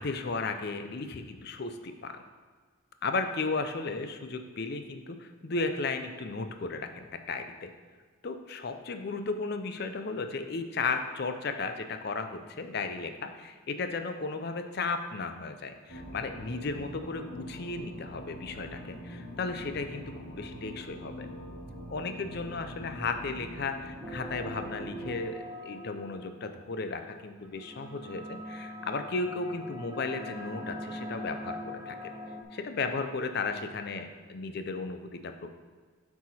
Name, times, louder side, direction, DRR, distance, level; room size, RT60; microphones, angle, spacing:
voice 1, 0.0-2.2 3.0-7.7 8.2-21.3 21.9-32.0 32.5-35.5, left 3 dB, 50° left, 7 dB, 0.5 m, -35 dB
sound 1, 15.9-25.2, equal, 80° left, 1.7 m, -44 dB
sound 2, 24.0-26.5 27.4-32.4, left 1 dB, 15° right, 0.5 m, -42 dB
7.8 x 4.8 x 4.2 m, 1.5 s
head